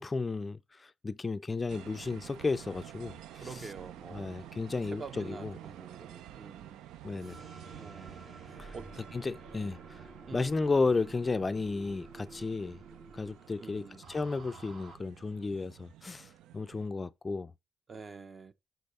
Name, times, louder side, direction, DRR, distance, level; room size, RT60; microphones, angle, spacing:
voice 1, 0.0-3.6 4.1-5.5 7.0-7.4 8.6-8.7 9.1-9.8 10.3-12.8 13.1-17.5, left 3 dB, 25° left, 0.4 m, -33 dB
sound 1, 1.7-16.9, right 12 dB, 90° right, 0.4 m, -51 dB
voice 2, 3.3-4.5 4.8-6.8 7.8-8.2 8.5-8.9 10.3-10.4 13.6-14.0 17.9-18.5, right 4 dB, 40° right, 0.8 m, -47 dB
sound 2, 7.2-14.9, right 3 dB, 60° right, 2.1 m, -51 dB
6.0 x 5.2 x 5.3 m
cardioid pair, 90°, 0 cm